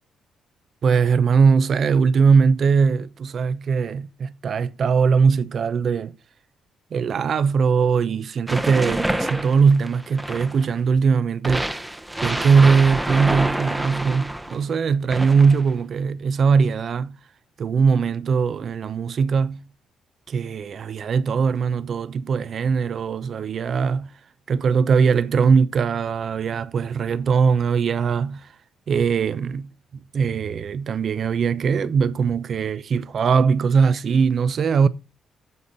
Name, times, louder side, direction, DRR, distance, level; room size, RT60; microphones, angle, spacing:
voice 1, 0.8-6.1 6.9-11.7 12.2-17.2 17.6-19.6 20.3-24.1 24.5-28.5 28.9-34.9, right 5 dB, 55° right, 0.7 m, -20 dB
sound 1, 8.5-10.7 11.4-14.6 15.1-15.7, right 1 dB, 10° right, 0.8 m, -27 dB
9.7 x 7.1 x 4.0 m
cardioid pair, 90°, 0 cm